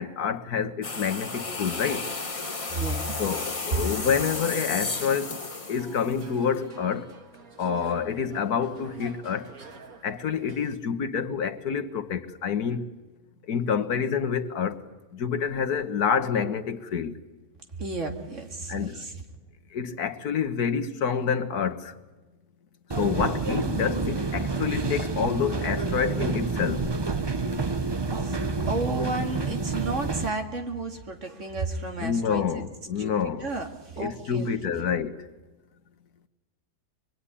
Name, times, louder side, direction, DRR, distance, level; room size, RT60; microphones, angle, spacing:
voice 1, 0.0-2.1 3.2-5.4 5.7-7.1 7.6-9.5 10.0-12.9 13.4-14.8 15.1-17.2 18.7-19.0 19.7-21.9 22.9-26.9 32.0-33.5 34.0-35.2, left 7 dB, 85° left, 1.8 m, -28 dB
sound 1, 0.8-6.6, left 3 dB, 25° left, 1.4 m, -33 dB
voice 2, 2.7-3.2 3.7-3.8 17.8-19.2 28.1-32.6 33.0-34.9, right 3 dB, 50° right, 2.7 m, -32 dB
sound 2, 4.9-10.8, right 5 dB, 70° right, 2.1 m, -48 dB
sound 3, 22.9-30.3, right 3 dB, 20° right, 0.7 m, -28 dB
25.0 x 22.0 x 10.0 m
omnidirectional pair, 1.6 m